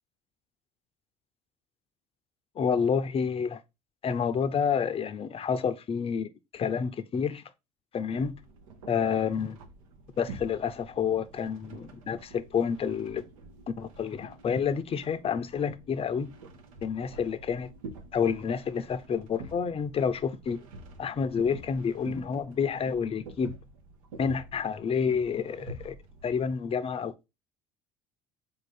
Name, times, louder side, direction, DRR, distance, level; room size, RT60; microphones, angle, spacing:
voice 1, 2.6-3.6 4.0-7.4 7.9-8.3 8.9-9.6 10.2-13.2 13.8-16.3 16.8-17.7 18.1-20.6 21.0-23.5 24.2-25.9 26.2-27.1, left 6 dB, 35° left, 0.5 m, -29 dB
sound 1, 8.2-26.5, right 2 dB, 85° right, 0.7 m, -48 dB
3.9 x 2.6 x 4.8 m
hypercardioid pair, 70°, 17 cm